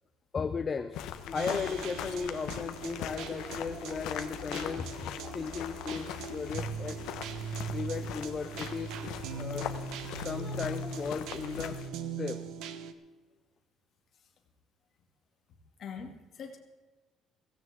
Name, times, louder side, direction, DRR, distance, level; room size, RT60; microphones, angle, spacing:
voice 1, 0.3-7.0 7.7-9.8 10.0-11.8 12.2-12.4, left 5 dB, 25° left, 9 dB, 0.5 m, -36 dB
sound 1, 0.9-11.9, left 10 dB, 80° left, 1.1 m, -41 dB
sound 2, 1.3-12.9, right 5 dB, 80° right, 1.1 m, -40 dB
voice 2, 15.8-16.6, left 6 dB, 40° left, 3 dB, 2.3 m, -43 dB
17.0 x 16.0 x 3.7 m, 1.2 s
cardioid pair, 175°, 0 cm